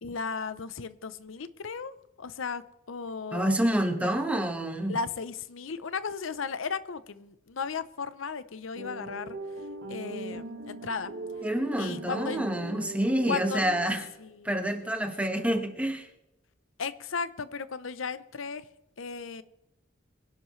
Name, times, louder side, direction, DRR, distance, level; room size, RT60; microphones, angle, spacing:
voice 1, 0.0-3.6 4.0-4.1 4.9-11.1 11.8-12.4 13.2-13.7 14.2-15.5 16.8-18.7 19.0-19.4, left 5 dB, 85° left, 14 dB, 0.7 m, -36 dB
voice 2, 3.3-5.0 11.4-14.0 14.4-16.1, right 1 dB, 5° right, 4 dB, 1.4 m, -28 dB
sound 1, 8.8-14.2, right 2 dB, 65° right, 1.5 m, -39 dB
24.0 x 11.5 x 3.2 m, 0.91 s
head